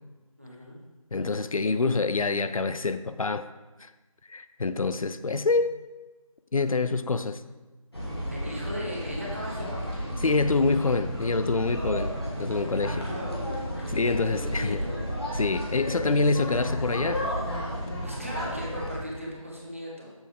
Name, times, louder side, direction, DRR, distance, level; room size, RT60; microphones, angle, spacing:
voice 1, 0.4-0.8 8.3-10.1 12.8-13.5 13.8-15.2 18.0-20.1, equal, 25° right, -4 dB, 0.9 m, -38 dB
voice 2, 1.1-3.5 3.8-3.9 4.3-5.8 6.5-7.4 10.2-13.1 13.9-14.8 15.4-17.3, left 3 dB, 75° left, 12 dB, 0.4 m, -26 dB
sound 1, 7.9-19.0, equal, 45° left, 1.6 m, -32 dB
7.1 x 5.3 x 3.7 m, 1.2 s
figure-of-eight pair, 175°, 18 cm